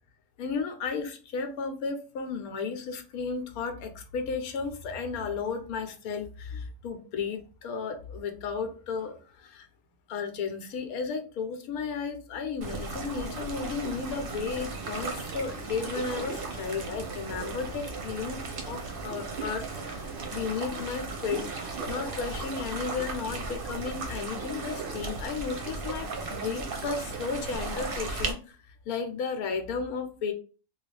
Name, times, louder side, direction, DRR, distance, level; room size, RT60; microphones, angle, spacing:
voice 1, 0.4-9.7 10.1-18.4 18.6-28.6 28.9-30.3, left 5 dB, 85° left, 6 dB, 1.1 m, -34 dB
sound 1, 12.6-28.3, right 3 dB, 50° right, 0.7 m, -36 dB
3.1 x 2.4 x 3.2 m, 0.36 s
omnidirectional pair, 1.5 m